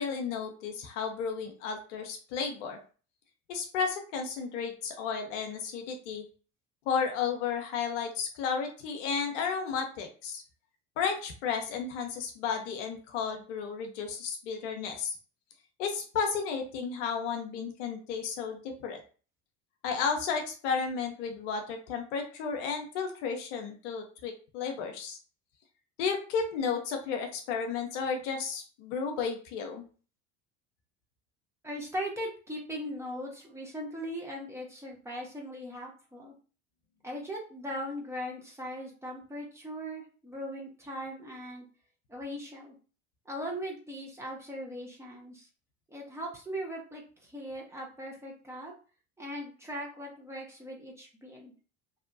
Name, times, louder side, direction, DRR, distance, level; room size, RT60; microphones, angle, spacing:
voice 1, 0.0-2.8 3.5-6.3 6.9-10.4 11.0-15.2 15.8-19.0 19.8-25.2 26.0-29.8, left 6 dB, 65° left, 3 dB, 0.7 m, -33 dB
voice 2, 31.6-36.3 37.0-41.7 42.1-42.7 43.3-45.5 45.9-48.7 49.2-51.5, equal, 5° right, -2 dB, 1.0 m, -39 dB
2.6 x 2.1 x 2.5 m, 0.37 s
hypercardioid pair, 70°, 39 cm